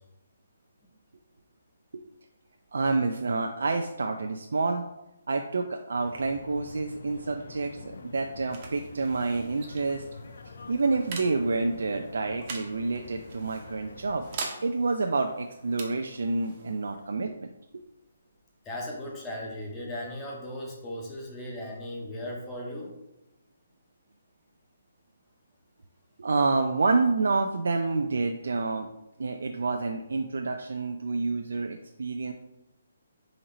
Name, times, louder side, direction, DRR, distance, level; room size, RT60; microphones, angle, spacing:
voice 1, 2.7-4.9 5.3-10.0 10.7-14.2 14.6-17.8 26.2-28.9 29.2-32.3, right 3 dB, 75° right, 4 dB, 0.3 m, -28 dB
sound 1, 6.0-14.4, left 4 dB, 65° left, 0.4 m, -46 dB
sound 2, 7.9-19.1, right 4 dB, 25° right, 0.6 m, -45 dB
voice 2, 18.6-22.9, left 1 dB, 10° left, -2 dB, 0.6 m, -37 dB
3.9 x 2.9 x 4.2 m, 0.90 s
hypercardioid pair, 170°, 0 cm